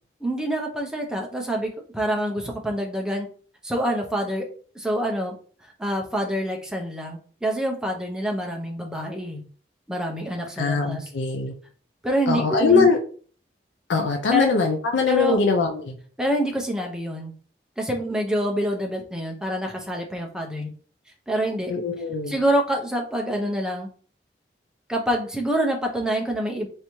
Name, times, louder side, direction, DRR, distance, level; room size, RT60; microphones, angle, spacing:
voice 1, 0.2-3.3 3.6-4.5 4.7-5.4 5.8-9.4 9.9-11.1 12.0-12.9 14.3-14.5 15.1-15.4 16.2-17.3 17.8-20.7 21.3-21.7 22.3-23.9 24.9-26.7, equal, 5° right, 1 dB, 0.5 m, -26 dB
voice 2, 10.6-11.5 12.3-13.0 13.9-16.0 21.7-22.4, left 4 dB, 85° left, 3 dB, 0.4 m, -22 dB
3.3 x 2.7 x 2.9 m, 0.44 s
head